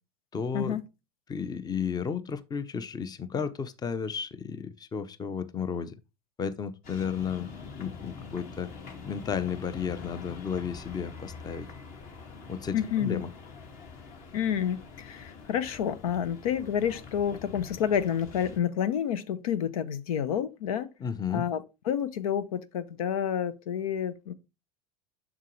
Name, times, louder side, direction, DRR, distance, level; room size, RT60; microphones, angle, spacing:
voice 1, 0.3-0.8 1.3-5.9 6.4-7.5 7.8-8.7 9.0-11.7 12.5-13.3 21.0-21.5, left 6 dB, 20° left, 0.7 m, -33 dB
sound 1, 6.8-18.6, left 4 dB, 50° left, 2.0 m, -45 dB
voice 2, 12.7-13.2 14.3-20.9 21.3-24.3, left 9 dB, 75° left, 0.7 m, -29 dB
7.4 x 6.0 x 3.1 m
hypercardioid pair, 90°, 19 cm